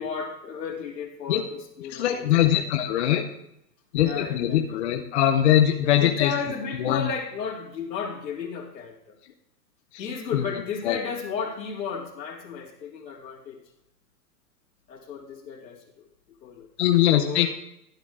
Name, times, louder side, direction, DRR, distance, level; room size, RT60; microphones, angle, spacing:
voice 1, 0.0-2.6 3.9-4.8 5.8-9.2 10.0-13.6 14.9-16.1 16.4-16.7 17.0-17.5, left 6 dB, 85° left, -2 dB, 3.3 m, -34 dB
voice 2, 1.9-3.2 3.9-6.3 6.8-7.1 10.3-10.5 10.8-11.0 16.8-17.5, left 11 dB, 45° left, 4 dB, 0.8 m, -22 dB
12.0 x 9.3 x 3.7 m, 0.77 s
hypercardioid pair, 160°, 49 cm